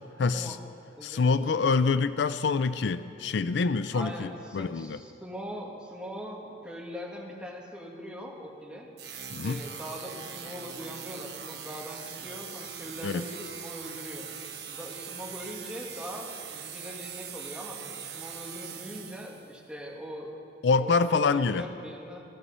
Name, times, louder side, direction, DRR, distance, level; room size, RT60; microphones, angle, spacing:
voice 1, 0.2-0.6 1.0-5.0 9.3-9.6 13.0-13.2 20.6-21.7, left 4 dB, 75° left, 13 dB, 0.4 m, -26 dB
voice 2, 1.0-1.7 3.9-8.9 9.4-14.3 14.7-20.4 20.8-22.2, equal, 5° right, -3 dB, 1.8 m, -41 dB
sound 1, 9.0-19.5, right 8 dB, 60° right, 1.1 m, -41 dB
15.0 x 13.5 x 5.5 m, 2.7 s
head